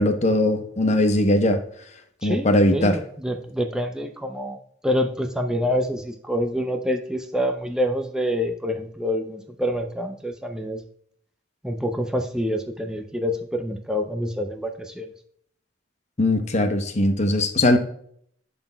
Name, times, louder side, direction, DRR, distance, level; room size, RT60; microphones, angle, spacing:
voice 1, 0.0-1.6 2.2-3.0 16.2-17.8, left 1 dB, 40° left, 7 dB, 0.8 m, -20 dB
voice 2, 2.2-4.6 4.8-10.8 11.6-15.1, equal, 5° right, 4 dB, 0.5 m, -26 dB
11.0 x 4.1 x 2.2 m, 0.63 s
head